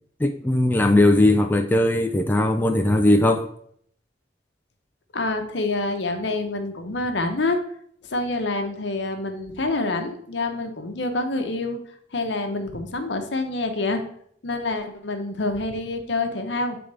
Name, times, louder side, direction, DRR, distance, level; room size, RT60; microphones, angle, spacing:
voice 1, 0.2-3.5, left 1 dB, 10° left, 0.3 m, -19 dB
voice 2, 5.1-7.6 8.0-11.8 12.1-14.0 14.4-16.8, left 2 dB, 70° left, 0.9 m, -27 dB
7.4 x 3.5 x 4.8 m
head